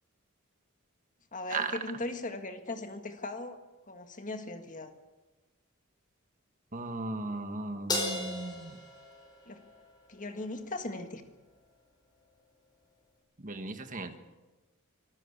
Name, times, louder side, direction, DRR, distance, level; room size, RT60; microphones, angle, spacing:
voice 1, 1.3-3.6 3.9-4.9 9.5-9.6 10.1-11.2, left 2 dB, 40° left, 7 dB, 1.9 m, -38 dB
voice 2, 6.7-8.8 13.4-14.2, right 3 dB, 40° right, 8 dB, 1.6 m, -36 dB
Crash cymbal, 7.9-10.4, left 2 dB, 20° left, 5.2 m, -36 dB
24.5 x 12.5 x 8.4 m, 1.2 s
head